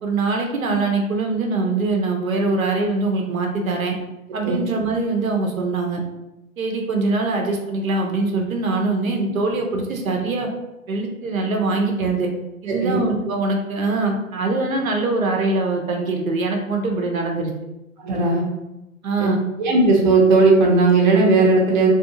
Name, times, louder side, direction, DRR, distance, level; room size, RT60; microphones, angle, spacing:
voice 1, 0.0-3.9 4.3-6.0 6.6-10.5 10.9-12.3 12.6-17.5 19.0-19.4, right 3 dB, 75° right, 2 dB, 0.6 m, -23 dB
voice 2, 12.7-13.0 18.0-18.4 19.2-19.3 19.6-21.9, right 3 dB, 35° right, -1 dB, 0.6 m, -16 dB
2.4 x 2.3 x 2.7 m, 0.95 s
figure-of-eight pair, 125°, 42 cm